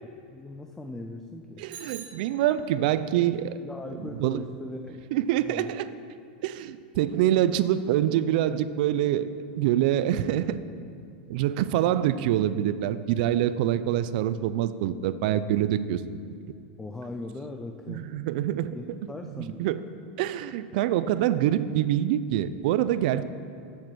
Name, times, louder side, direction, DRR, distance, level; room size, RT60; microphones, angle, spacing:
voice 1, 0.3-1.7 2.8-2.9 3.6-5.0 5.5-5.7 16.8-18.1 18.7-19.6, left 2 dB, 5° left, 4 dB, 0.4 m, -39 dB
voice 2, 1.6-3.5 4.2-4.4 5.1-5.9 6.4-10.6 11.3-16.0 17.9-18.8 19.6-19.8 20.2-23.2, right 12 dB, 60° right, 14 dB, 0.4 m, -25 dB
Bicycle bell, 1.7-3.0, right 7 dB, 75° right, 2.0 m, -45 dB
7.4 x 7.4 x 6.3 m, 2.3 s
supercardioid pair, 150°, 5 cm